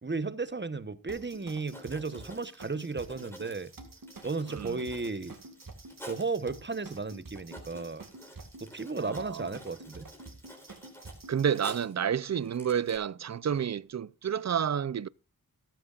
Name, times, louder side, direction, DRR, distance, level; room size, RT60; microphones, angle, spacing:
voice 1, 0.0-3.7 4.2-5.3 6.1-8.0 8.6-10.1, right 4 dB, 30° right, 1.0 m, -34 dB
sound 1, 1.1-11.8, right 2 dB, 65° right, 2.3 m, -49 dB
Writing, 1.6-6.4 6.9-7.0 7.3-12.0 12.4-13.0, equal, 5° left, 3.7 m, -51 dB
voice 2, 9.0-9.5 11.3-15.1, right 8 dB, 45° right, 0.5 m, -30 dB
14.0 x 14.0 x 2.4 m
wide cardioid pair, 75°, 36 cm